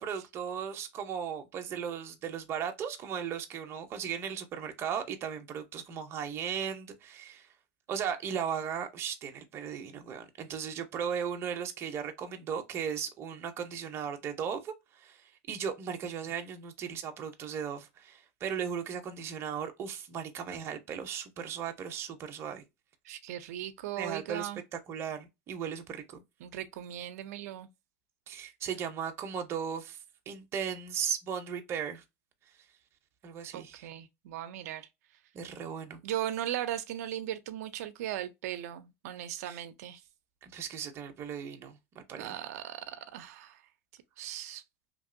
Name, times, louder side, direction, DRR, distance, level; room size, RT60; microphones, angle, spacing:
voice 1, 0.0-7.5 7.9-14.7 15.0-15.2 15.5-22.6 24.0-24.5 24.9-26.2 28.3-30.0 30.3-32.0 33.2-33.9 35.3-36.0 39.5-39.6 40.4-42.3, right 7 dB, 30° right, 0.6 m, -36 dB
voice 2, 23.0-24.6 26.4-27.7 33.5-34.9 36.0-40.0 42.2-43.6 44.2-44.6, right 12 dB, 80° right, 0.4 m, -38 dB
2.9 x 2.6 x 2.5 m
supercardioid pair, 145°, 8 cm